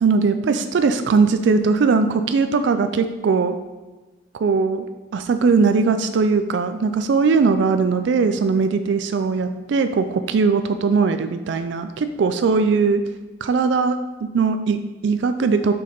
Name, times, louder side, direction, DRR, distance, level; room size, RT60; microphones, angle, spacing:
voice 1, 0.0-3.6 4.3-4.9 5.1-13.0 13.4-15.7, right 4 dB, 65° right, 9 dB, 0.3 m, -20 dB
6.6 x 5.4 x 3.8 m, 1.2 s
head